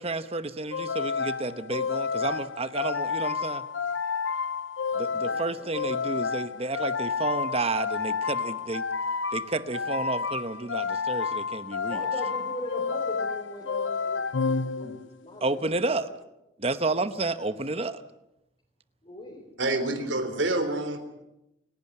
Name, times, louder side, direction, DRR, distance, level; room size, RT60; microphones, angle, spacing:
voice 1, 0.0-3.6 5.0-8.8 9.3-12.0 14.8-15.0 15.4-16.1 16.6-18.0, right 2 dB, 30° right, 1.0 m, -31 dB
sound 1, 0.7-15.3, left 5 dB, 85° left, 0.8 m, -30 dB
voice 2, 5.1-6.2 11.9-16.0 19.0-19.4, left 1 dB, 30° left, 4.4 m, -40 dB
voice 3, 19.6-21.2, right 2 dB, 75° right, 3.6 m, -28 dB
29.0 x 11.5 x 9.7 m
head